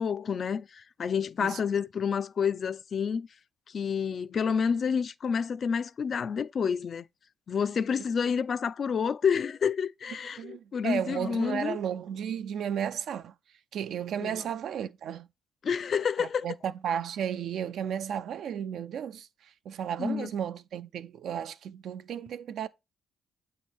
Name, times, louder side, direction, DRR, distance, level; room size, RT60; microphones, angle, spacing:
voice 1, 0.0-3.3 3.7-7.0 7.5-11.8 14.2-14.4 15.6-16.5 20.0-20.3, left 6 dB, 50° left, 0.4 m, -29 dB
voice 2, 10.4-13.3 13.7-15.3 16.2-22.7, right 8 dB, 70° right, 0.4 m, -34 dB
8.1 x 3.1 x 4.3 m
cardioid pair, 90°, 0 cm